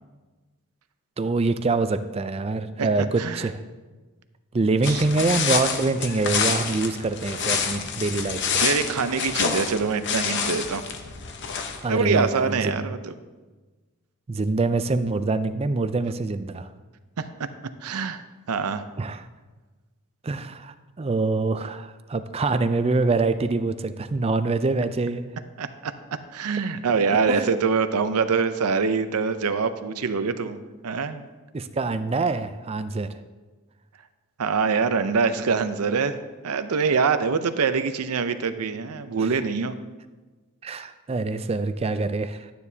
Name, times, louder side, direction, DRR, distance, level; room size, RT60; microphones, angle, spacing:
voice 1, 1.2-3.6 4.5-8.6 11.8-12.9 14.3-16.7 19.0-19.2 20.2-25.3 27.3-27.5 31.5-33.1 40.6-42.5, right 3 dB, 25° right, 11 dB, 0.4 m, -25 dB
voice 2, 2.8-3.5 4.8-5.1 8.6-10.9 11.9-13.1 17.2-17.3 17.8-18.2 18.5-18.8 25.6-25.9 26.3-30.6 30.8-31.2 34.4-36.2 36.4-39.8, right 5 dB, 80° right, 10 dB, 0.6 m, -24 dB
sound 1, 4.8-12.0, left 6 dB, 50° left, 0.8 m, -27 dB
11.5 x 9.4 x 2.8 m, 1.3 s
head